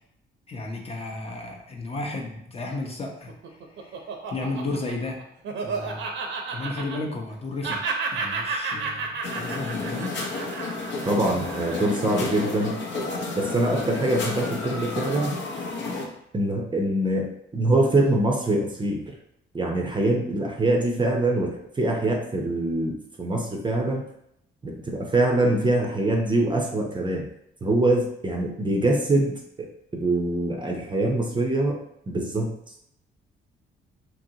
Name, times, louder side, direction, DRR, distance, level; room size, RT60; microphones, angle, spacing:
voice 1, 0.5-3.3 3.8-4.0 4.3-5.2 5.6-6.1 6.5-7.8 8.1-10.1 11.2-11.4, left 2 dB, 30° left, 0 dB, 0.6 m, -33 dB
Laughter, 3.1-7.4 7.6-12.1, right 4 dB, 70° right, 0.6 m, -32 dB
sound 1, 9.2-16.0, left 3 dB, 65° left, 0.7 m, -31 dB
voice 2, 11.1-12.7 13.3-15.3 16.3-19.1 19.5-24.1 24.6-27.2 27.6-29.7 29.9-31.8 32.1-32.5, right 2 dB, 25° right, 0 dB, 0.5 m, -24 dB
2.9 x 2.7 x 2.7 m, 0.77 s
cardioid pair, 90°, 20 cm